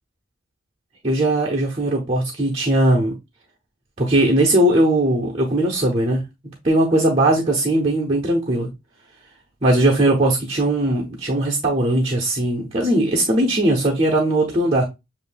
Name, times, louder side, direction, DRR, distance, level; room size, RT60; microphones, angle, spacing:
voice 1, 1.0-3.1 4.0-6.2 6.6-8.7 9.6-14.8, right 1 dB, 30° right, 0.9 m, -19 dB
7.3 x 2.6 x 2.2 m
head